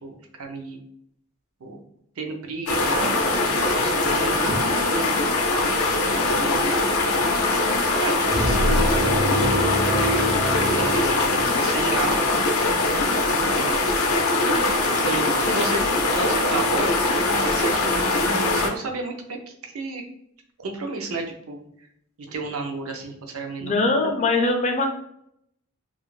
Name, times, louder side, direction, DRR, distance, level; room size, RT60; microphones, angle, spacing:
voice 1, 0.0-0.8 1.6-1.8 2.2-5.1 5.9-6.8 8.0-8.8 9.2-9.6 10.7-12.4 13.3-13.8 15.0-15.8 16.1-16.9 17.4-19.4 19.7-20.0 20.6-21.6 22.3-24.2, right 3 dB, 85° right, 3 dB, 0.5 m, -32 dB
sound 1, 2.7-18.7, left 2 dB, 90° left, 0.5 m, -22 dB
sound 2, 8.3-11.7, equal, 40° right, 0.5 m, -25 dB
voice 2, 23.6-24.9, left 3 dB, 30° left, 3 dB, 0.4 m, -23 dB
2.4 x 2.0 x 3.0 m, 0.71 s
head